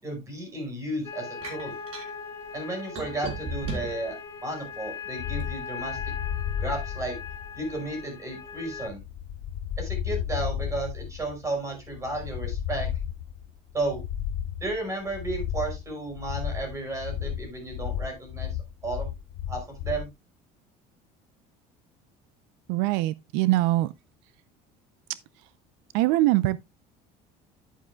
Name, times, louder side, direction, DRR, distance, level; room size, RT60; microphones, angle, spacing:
voice 1, 0.0-1.7 2.5-4.2 4.4-6.0 6.6-7.2 7.6-9.0 9.8-12.9 13.7-14.0 14.6-18.5 18.8-19.1 19.5-20.1, right 2 dB, 20° right, 5.3 m, -33 dB
sound 1, 1.0-8.9, left 5 dB, 20° left, 3.4 m, -39 dB
sound 2, 1.4-2.1 3.0-4.0 4.6-5.5, right 3 dB, 40° right, 3.4 m, -35 dB
sound 3, 5.2-20.1, left 9 dB, 65° left, 0.9 m, -33 dB
voice 2, 22.7-23.9 25.9-26.6, right 17 dB, 85° right, 0.5 m, -23 dB
11.0 x 8.8 x 2.2 m
cardioid pair, 150°, 16 cm